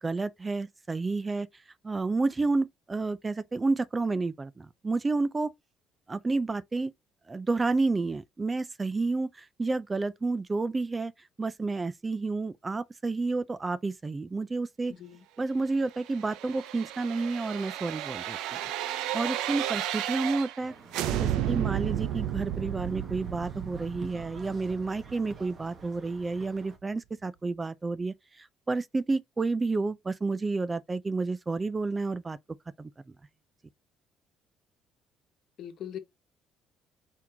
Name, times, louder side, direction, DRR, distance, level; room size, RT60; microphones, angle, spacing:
voice 1, 0.0-1.5 1.8-5.5 6.1-6.9 7.3-11.1 11.4-14.9 15.4-18.4 19.1-20.7 21.1-32.4 32.8-32.9, right 3 dB, 20° right, 0.4 m, -30 dB
voice 2, 14.9-15.2 35.6-36.0, left 10 dB, 65° left, 1.1 m, -40 dB
sound 1, 15.9-20.6 20.9-25.8 26.1-26.2, right 12 dB, 80° right, 0.5 m, -33 dB
sound 2, 20.6-26.8, right 4 dB, 40° right, 1.5 m, -49 dB
4.5 x 3.7 x 2.7 m
cardioid pair, 95°, 0 cm